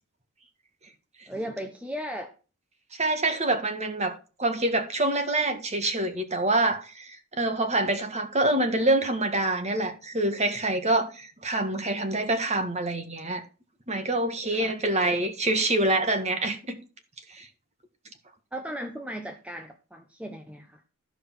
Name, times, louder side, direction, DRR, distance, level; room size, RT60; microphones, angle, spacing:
voice 1, 1.3-2.3 14.6-14.7 18.5-20.9, equal, 5° right, 0.8 m, -36 dB
voice 2, 3.0-4.1 4.4-13.4 13.9-16.8 17.3-17.5, right 2 dB, 30° right, 1.7 m, -26 dB
14.0 x 5.1 x 6.1 m
head